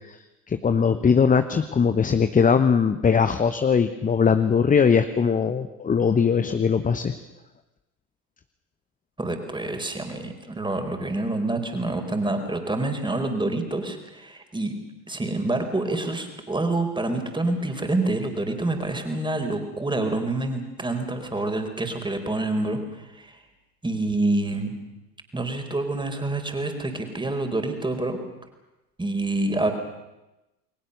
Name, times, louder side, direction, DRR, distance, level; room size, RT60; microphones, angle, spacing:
voice 1, 0.5-7.1, left 6 dB, 15° left, 10 dB, 1.0 m, -20 dB
voice 2, 9.2-14.8 15.1-23.4 23.8-24.7 25.3-28.2 29.0-29.7, right 2 dB, 10° right, 5 dB, 4.5 m, -27 dB
30.0 x 21.5 x 6.8 m, 0.98 s
figure-of-eight pair, 70°, 46 cm